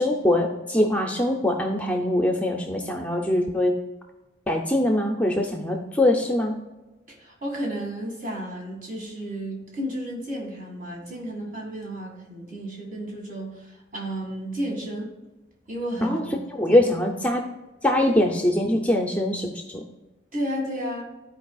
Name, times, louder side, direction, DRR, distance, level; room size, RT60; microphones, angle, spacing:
voice 1, 0.0-3.8 4.5-6.6 16.0-16.2 16.5-17.4 17.8-19.8, left 1 dB, 10° left, 2 dB, 0.5 m, -22 dB
voice 2, 7.1-15.1 15.7-16.2 16.7-16.8 20.3-21.0, right 1 dB, 45° right, -1 dB, 2.1 m, -32 dB
13.5 x 4.5 x 2.4 m, 1.1 s
head